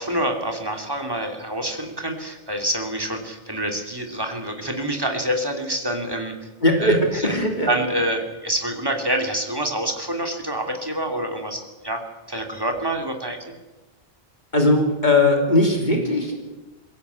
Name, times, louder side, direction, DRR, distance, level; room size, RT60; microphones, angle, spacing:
voice 1, 0.0-6.5 6.8-7.3 7.7-13.4, right 1 dB, 25° right, 3 dB, 2.9 m, -27 dB
voice 2, 6.6-7.7 14.5-16.4, left 2 dB, 45° left, 2 dB, 3.5 m, -19 dB
22.5 x 16.0 x 8.4 m, 1.2 s
omnidirectional pair, 1.0 m